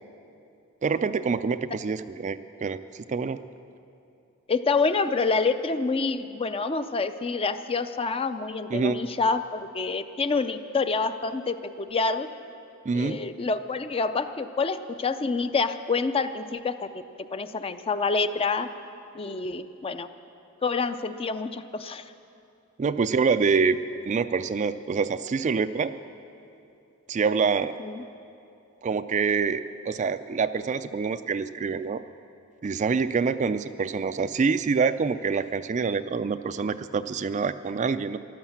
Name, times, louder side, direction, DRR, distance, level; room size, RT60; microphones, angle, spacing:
voice 1, 0.8-2.8 3.1-3.4 8.7-9.0 12.9-13.2 22.8-23.8 24.1-25.9 27.1-27.7 28.8-32.0 32.6-38.2, right 5 dB, 35° right, 11 dB, 0.3 m, -26 dB
voice 2, 4.5-12.3 12.9-16.9 17.2-18.7 19.1-20.1 20.6-22.1 27.8-28.0, left 4 dB, 25° left, 10 dB, 0.4 m, -27 dB
14.0 x 11.5 x 7.2 m, 2.7 s
head